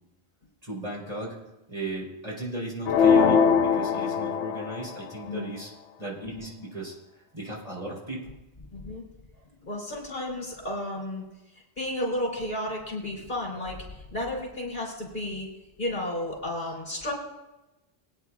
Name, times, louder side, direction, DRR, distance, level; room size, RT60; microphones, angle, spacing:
voice 1, 0.6-1.4 1.7-5.7 6.0-6.9 7.3-8.3, right 2 dB, 35° right, -5 dB, 4.2 m, -36 dB
sound 1, 2.9-4.9, left 6 dB, 80° left, 1.0 m, -21 dB
voice 2, 8.7-9.0 9.6-11.2 11.8-15.5 15.8-17.1, left 1 dB, 45° left, -3 dB, 3.4 m, -32 dB
21.5 x 9.6 x 2.4 m, 0.99 s
omnidirectional pair, 1.1 m